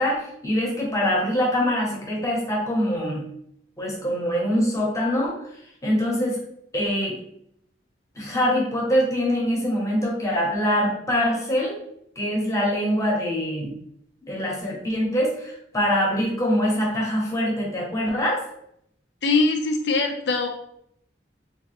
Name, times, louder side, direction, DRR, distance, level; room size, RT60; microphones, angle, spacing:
voice 1, 0.0-3.2 3.8-5.4 5.8-6.4 6.7-7.2 8.1-11.8 12.2-13.7 14.3-18.4, equal, 20° left, -3 dB, 1.0 m, -24 dB
voice 2, 19.2-20.5, left 3 dB, 75° left, 4 dB, 0.6 m, -22 dB
3.3 x 2.8 x 3.2 m, 0.72 s
head